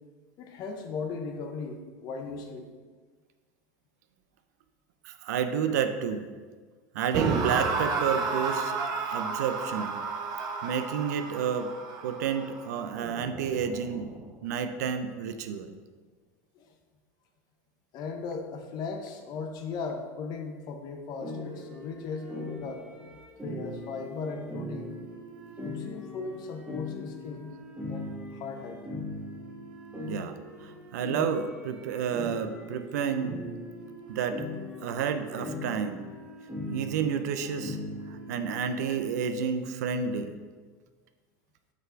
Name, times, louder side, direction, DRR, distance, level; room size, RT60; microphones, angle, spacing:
voice 1, 0.4-2.7 7.9-8.0 16.5-16.6 17.9-22.8 23.4-25.0 25.6-27.5 27.9-28.8 38.9-39.0, left 4 dB, 50° left, 4 dB, 0.9 m, -37 dB
voice 2, 5.0-6.3 6.9-8.8 9.1-10.0 10.6-11.7 12.0-14.1 14.4-15.7 30.1-33.4 34.1-34.5 34.8-36.0 36.7-37.8 38.1-40.3, right 7 dB, 80° right, 9 dB, 0.5 m, -30 dB
sound 1, 7.1-14.3, right 4 dB, 45° right, 0.8 m, -32 dB
sound 2, 21.2-38.6, left 1 dB, 10° right, 1.3 m, -40 dB
5.5 x 4.1 x 4.5 m, 1.5 s
hypercardioid pair, 100°, 9 cm